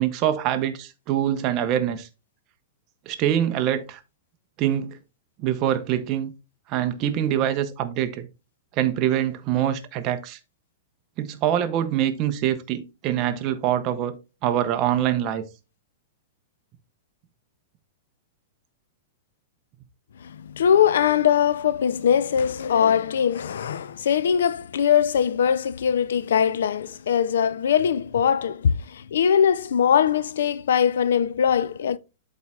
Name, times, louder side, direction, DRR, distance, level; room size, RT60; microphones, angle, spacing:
voice 1, 0.0-2.1 3.1-4.0 4.6-5.0 5.4-6.3 6.7-8.3 8.8-10.4 11.2-14.2 14.4-15.4, right 11 dB, 25° right, 0.7 m, -24 dB
voice 2, 20.2-32.0, left 8 dB, 90° left, 0.4 m, -21 dB
12.0 x 4.3 x 2.3 m
supercardioid pair, 170°, 0 cm